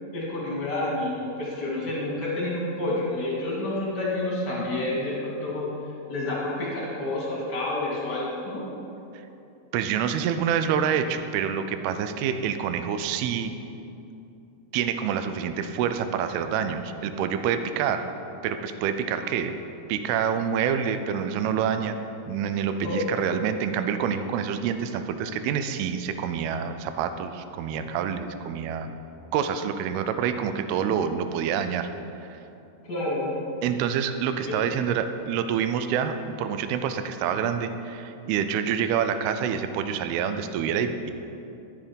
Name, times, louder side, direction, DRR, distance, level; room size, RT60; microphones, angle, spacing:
voice 1, 0.1-5.7 6.1-8.6 22.8-23.0 32.8-33.3 34.4-34.5, left 2 dB, 25° left, -5 dB, 2.8 m, -29 dB
voice 2, 9.7-13.5 14.7-18.1 18.4-19.6 19.9-22.0 22.3-28.9 29.3-31.9 32.2-32.4 33.6-41.1, right 7 dB, 80° right, 9 dB, 2.3 m, -27 dB
13.0 x 7.3 x 5.2 m, 2.8 s
omnidirectional pair, 4.9 m